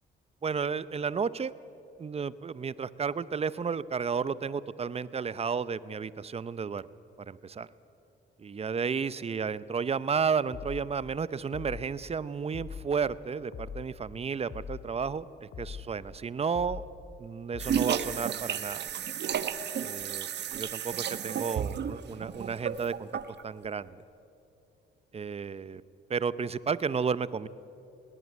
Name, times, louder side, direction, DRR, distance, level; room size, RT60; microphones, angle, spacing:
voice 1, 0.4-1.5 2.0-6.8 7.3-7.7 8.4-16.8 17.2-18.8 19.8-20.3 20.5-23.1 23.4-24.0 25.1-25.8 26.1-27.5, right 6 dB, 30° right, 17 dB, 0.7 m, -32 dB
sound 1, 10.5-10.9 11.5-11.9 12.5-12.9 13.5-13.9 14.5-14.9 15.5-15.9 16.5-16.9 17.5-17.9, left 7 dB, 60° left, 2.2 m, -41 dB
sound 2, 17.6-23.4, right 9 dB, 60° right, 1.1 m, -33 dB
19.0 x 19.0 x 9.6 m, 2.7 s
cardioid pair, 90°, 20 cm